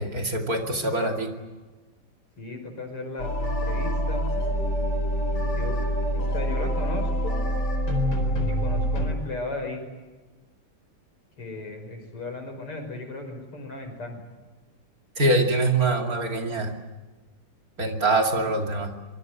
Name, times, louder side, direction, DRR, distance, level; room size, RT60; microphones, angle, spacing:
voice 1, 0.0-1.3 15.2-16.7 17.8-18.9, right 2 dB, 40° right, 3 dB, 2.9 m, -24 dB
voice 2, 2.4-4.2 5.4-5.7 6.1-7.4 8.5-9.8 11.4-14.2, left 2 dB, 85° left, 5 dB, 6.3 m, -36 dB
sound 1, 3.2-9.1, equal, 55° left, 5.0 m, -26 dB
25.0 x 23.5 x 8.0 m, 1.3 s
omnidirectional pair, 2.4 m